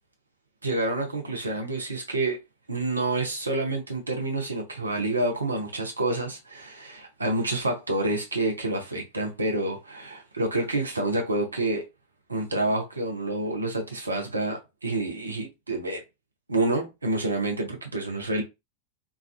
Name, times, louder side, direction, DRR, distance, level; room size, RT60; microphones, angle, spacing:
voice 1, 0.6-2.4 2.7-11.8 12.3-16.0 16.5-18.4, right 2 dB, 80° right, 0.6 m, -28 dB
2.4 x 2.3 x 2.3 m
figure-of-eight pair, 90°, 0 cm